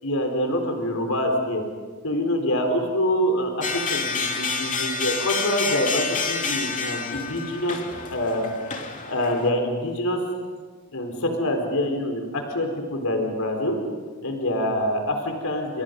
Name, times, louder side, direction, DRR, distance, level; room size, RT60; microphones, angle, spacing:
voice 1, 0.0-1.6 2.0-7.8 8.1-8.5 9.1-10.2 10.9-13.8 14.2-15.8, left 1 dB, 85° left, 4 dB, 4.3 m, -25 dB
sound 1, 3.6-9.5, left 4 dB, 35° left, 2.8 m, -29 dB
30.0 x 28.5 x 5.4 m, 1.5 s
head